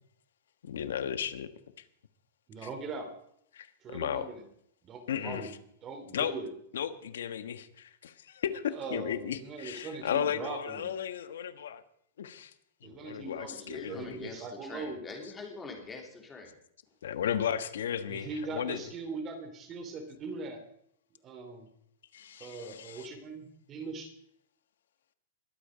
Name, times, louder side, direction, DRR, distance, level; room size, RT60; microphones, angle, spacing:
voice 1, 0.6-1.5 2.6-2.7 3.5-4.3 5.1-5.5 6.1-6.3 6.7-11.8 12.2-12.5 12.8-14.3 17.0-18.8 22.1-23.1, left 9 dB, 85° left, 12 dB, 1.4 m, -35 dB
voice 2, 2.5-3.1 3.8-4.4 4.8-5.5 5.8-6.5 8.7-10.9 12.8-15.0 18.1-20.6 21.2-21.7 22.4-24.1, right 4 dB, 25° right, 6 dB, 2.9 m, -40 dB
voice 3, 13.2-16.5, left 3 dB, 15° left, 2 dB, 3.3 m, -45 dB
21.5 x 8.6 x 5.1 m, 0.69 s
supercardioid pair, 150°, 0 cm